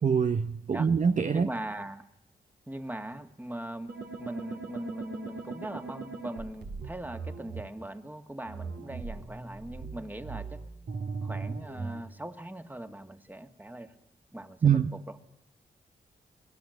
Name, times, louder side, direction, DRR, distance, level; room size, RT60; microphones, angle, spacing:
voice 1, 0.0-1.5 14.6-14.9, right 6 dB, 45° right, 9 dB, 0.8 m, -24 dB
voice 2, 1.3-2.1 2.7-3.9 4.2-10.6 11.2-13.9 14.3-15.2, right 1 dB, 10° right, 8 dB, 1.9 m, -40 dB
sound 1, 3.9-7.6 8.5-12.0, right 4 dB, 65° right, 2.9 m, -39 dB
25.5 x 18.5 x 8.0 m, 0.86 s
supercardioid pair, 45°, 18 cm